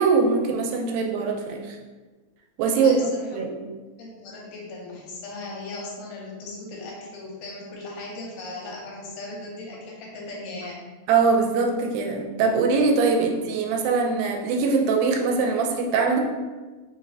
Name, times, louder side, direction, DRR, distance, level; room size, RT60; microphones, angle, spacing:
voice 1, 0.0-1.8 2.6-2.9 3.3-3.5 11.1-16.2, right 4 dB, 90° right, 2 dB, 2.3 m, -22 dB
voice 2, 2.8-3.5 4.0-10.8, left 2 dB, 80° left, -3 dB, 2.3 m, -38 dB
5.3 x 3.2 x 2.3 m, 1.3 s
omnidirectional pair, 4.0 m